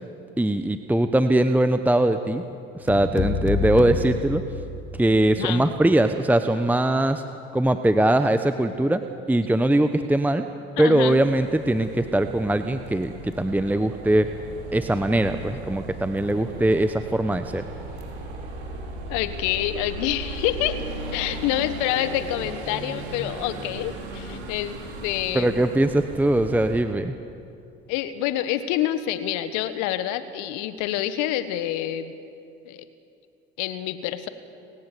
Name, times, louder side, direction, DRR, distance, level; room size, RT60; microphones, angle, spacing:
voice 1, 0.4-2.4 2.8-4.4 5.0-7.2 7.5-9.0 9.3-10.4 10.8-14.3 14.7-17.6 25.3-27.1, right 1 dB, 5° right, 9 dB, 1.1 m, -21 dB
sound 1, 2.9-5.2, left 5 dB, 35° left, 2.4 m, -28 dB
voice 2, 5.3-5.7 10.8-11.2 19.1-20.8 21.1-25.6 27.9-32.1 32.6-32.8 33.6-34.3, left 12 dB, 65° left, 12 dB, 1.5 m, -27 dB
sound 2, 11.1-26.8, right 2 dB, 85° right, 4.4 m, -37 dB
29.5 x 17.0 x 6.9 m, 2.6 s
hypercardioid pair, 65°, 32 cm